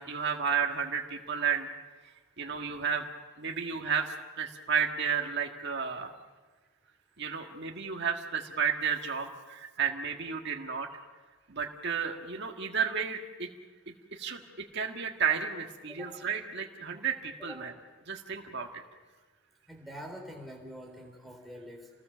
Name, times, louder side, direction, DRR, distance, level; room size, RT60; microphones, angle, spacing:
voice 1, 0.0-1.7 2.4-3.1 3.4-6.1 7.2-10.9 11.5-13.5 13.9-14.4 14.7-17.7 18.1-18.8, right 6 dB, 50° right, 2 dB, 1.7 m, -32 dB
voice 2, 19.7-21.9, equal, ahead, 2 dB, 3.9 m, -45 dB
28.5 x 19.5 x 6.7 m, 1.3 s
head